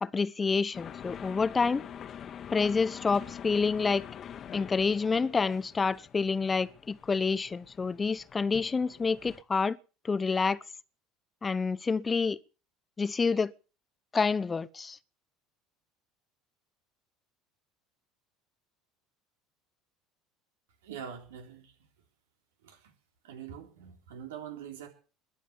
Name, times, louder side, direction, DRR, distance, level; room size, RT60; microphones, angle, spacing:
voice 1, 0.0-1.8 2.5-4.0 4.5-9.8 10.0-10.6 11.4-12.4 13.0-13.5 14.1-15.0, left 4 dB, 25° left, 0.8 m, -28 dB
sound 1, 0.7-9.4, left 8 dB, 45° left, 1.6 m, -45 dB
voice 2, 20.8-21.9 22.6-22.9 23.2-24.9, right 8 dB, 75° right, 3.6 m, -44 dB
21.5 x 7.5 x 7.0 m
hypercardioid pair, 70°, 0 cm